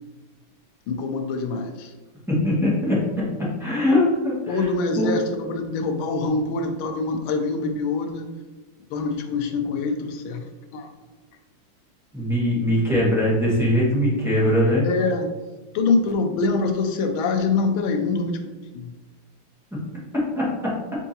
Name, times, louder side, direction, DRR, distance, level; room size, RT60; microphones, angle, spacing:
voice 1, 0.9-1.9 4.5-8.3 8.9-10.4 10.7-10.9 14.8-15.3 15.7-18.9, left 3 dB, 80° left, 5 dB, 1.4 m, -25 dB
voice 2, 2.3-3.0 3.6-4.7 5.0-5.1 12.1-14.8 20.1-20.7, left 1 dB, ahead, -8 dB, 1.0 m, -21 dB
4.6 x 3.8 x 2.8 m, 1.2 s
omnidirectional pair, 2.3 m